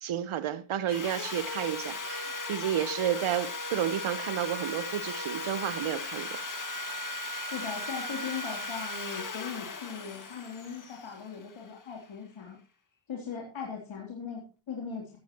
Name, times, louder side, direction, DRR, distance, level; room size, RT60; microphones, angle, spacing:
voice 1, 0.0-6.3, right 10 dB, 90° right, 1.2 m, -31 dB
Sawing, 0.9-11.9, left 2 dB, 40° left, 2.1 m, -37 dB
voice 2, 7.5-12.6 13.1-15.2, left 6 dB, 70° left, 3.5 m, -39 dB
15.0 x 13.0 x 3.1 m
cardioid pair, 85°, 47 cm